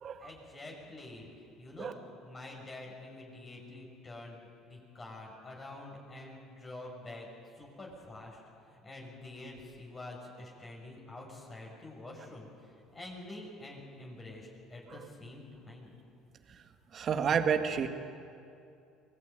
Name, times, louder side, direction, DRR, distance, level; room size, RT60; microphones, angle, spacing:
voice 1, 0.2-1.3 1.6-2.0 2.2-7.3 7.6-8.4 8.7-15.9, left 2 dB, 25° left, -1 dB, 6.3 m, -47 dB
voice 2, 16.9-17.9, right 7 dB, 45° right, 6 dB, 1.9 m, -30 dB
24.5 x 19.5 x 9.1 m, 2.5 s
cardioid pair, 115°, 0 cm